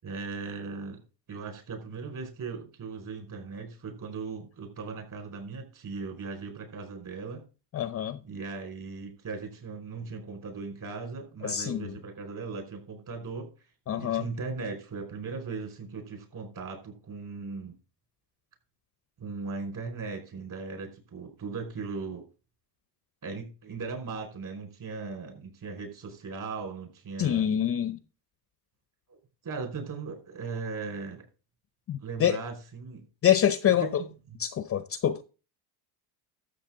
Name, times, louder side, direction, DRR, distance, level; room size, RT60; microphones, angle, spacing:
voice 1, 0.0-1.0 1.3-7.4 8.2-13.5 14.0-17.7 19.2-22.2 23.2-27.5 29.1-29.2 29.4-31.2 32.0-33.1 33.8-34.1, right 4 dB, 40° right, 5.1 m, -38 dB
voice 2, 7.7-8.2 11.4-11.9 13.9-14.3 27.2-28.0 31.9-32.4 33.2-34.0 34.4-35.2, left 10 dB, 30° left, 0.6 m, -26 dB
13.0 x 7.5 x 3.8 m
supercardioid pair, 120°, 47 cm